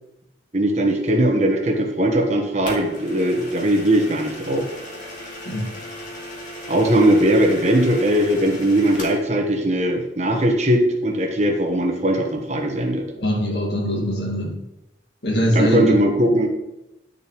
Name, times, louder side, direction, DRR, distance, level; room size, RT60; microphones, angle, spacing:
voice 1, 0.5-4.7 6.7-13.0 15.5-16.5, right 1 dB, 40° right, 2 dB, 1.2 m, -19 dB
sound 1, 2.7-9.3, left 1 dB, 45° left, 2.3 m, -36 dB
voice 2, 13.1-14.6 15.2-16.0, equal, 60° left, 0 dB, 2.0 m, -22 dB
10.0 x 6.7 x 3.1 m, 0.90 s
head